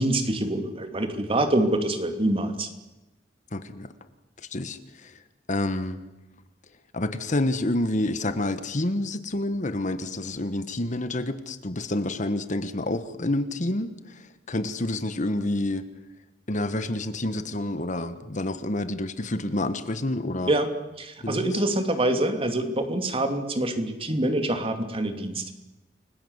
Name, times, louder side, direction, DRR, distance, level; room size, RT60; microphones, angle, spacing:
voice 1, 0.0-2.7 20.5-20.7 21.0-25.5, right 1 dB, 30° right, 7 dB, 2.8 m, -25 dB
voice 2, 3.5-3.9 4.4-5.2 5.5-6.0 6.9-15.9 16.5-20.5 21.2-21.6, left 1 dB, 45° left, 11 dB, 1.4 m, -28 dB
30.0 x 21.5 x 8.2 m, 1.0 s
head